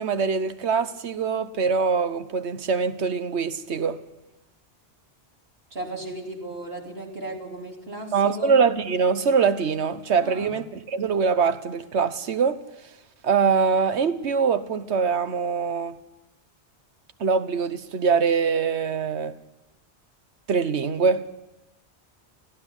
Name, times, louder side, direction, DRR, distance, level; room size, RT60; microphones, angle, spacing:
voice 1, 0.0-4.0 8.1-12.7 13.2-16.0 17.2-19.4 20.5-21.3, right 5 dB, 80° right, 1.3 m, -23 dB
voice 2, 5.7-8.6 10.2-10.5, right 2 dB, 60° right, 3.7 m, -35 dB
18.0 x 14.5 x 9.9 m
omnidirectional pair, 1.1 m